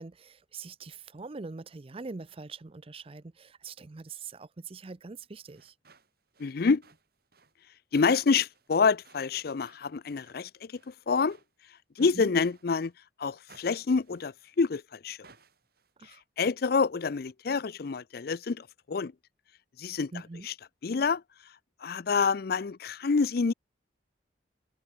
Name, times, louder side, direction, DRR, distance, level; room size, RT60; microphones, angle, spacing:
voice 1, 0.0-5.7 12.0-12.3 16.0-16.2 20.1-20.5, right 4 dB, 30° right, 0.5 m, -43 dB
sound 1, 5.3-13.0 13.5-14.7 15.2-15.9, right 4 dB, 55° right, 4.4 m, -62 dB
voice 2, 6.4-6.8 7.9-11.4 12.0-12.9 13.2-15.2 16.4-19.1 19.8-20.1 20.4-20.5 20.8-21.2 21.8-23.5, left 5 dB, 55° left, 0.5 m, -27 dB
head